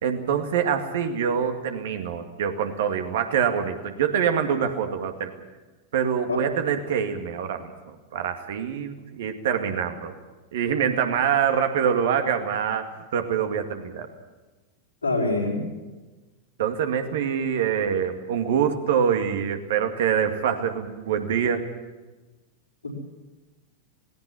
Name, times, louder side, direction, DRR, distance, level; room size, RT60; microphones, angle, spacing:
voice 1, 0.0-5.3 5.9-10.1 10.5-12.8 13.1-14.1 16.6-21.6, right 8 dB, 55° right, 6 dB, 2.2 m, -25 dB
voice 2, 15.0-15.7 22.8-23.0, left 2 dB, 80° left, -1 dB, 5.2 m, -25 dB
19.0 x 17.5 x 9.8 m, 1.2 s
figure-of-eight pair, 90°, 0 cm